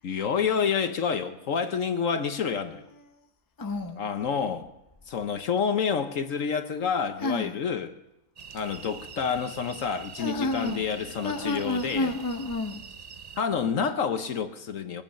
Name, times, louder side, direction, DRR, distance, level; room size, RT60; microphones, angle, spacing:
voice 1, 0.0-2.9 4.0-4.7 5.1-8.0 8.5-12.1 13.4-15.0, left 6 dB, 60° left, 1.2 m, -28 dB
voice 2, 3.6-4.1 7.2-7.6 10.2-10.9 11.2-12.8, left 2 dB, 15° left, 0.9 m, -30 dB
sound 1, 8.4-13.4, right 7 dB, 55° right, 0.4 m, -45 dB
23.0 x 8.9 x 5.7 m
omnidirectional pair, 1.6 m